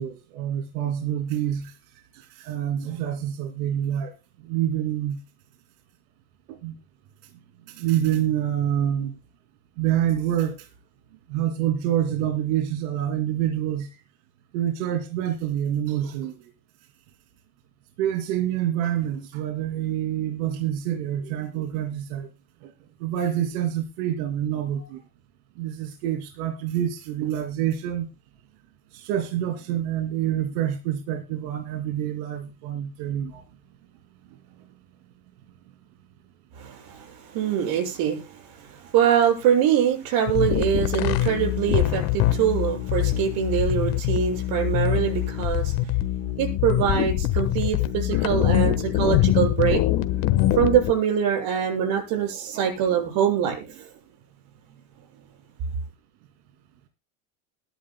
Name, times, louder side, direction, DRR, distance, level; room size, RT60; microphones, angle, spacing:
voice 1, 0.0-1.7 2.1-4.1 4.4-5.2 6.5-6.8 7.7-9.1 9.8-10.7 11.3-13.9 14.5-16.5 18.0-22.3 22.6-22.7 23.0-25.0 25.6-28.1 28.9-33.4 48.1-48.3, right 10 dB, 75° right, 2.8 m, -27 dB
voice 2, 36.6-45.8 46.4-49.8 50.5-53.9, right 9 dB, 55° right, 6.9 m, -24 dB
sound 1, 40.3-50.9, left 13 dB, 50° left, 1.3 m, -23 dB
21.0 x 11.0 x 2.2 m
cardioid pair, 155°, 44 cm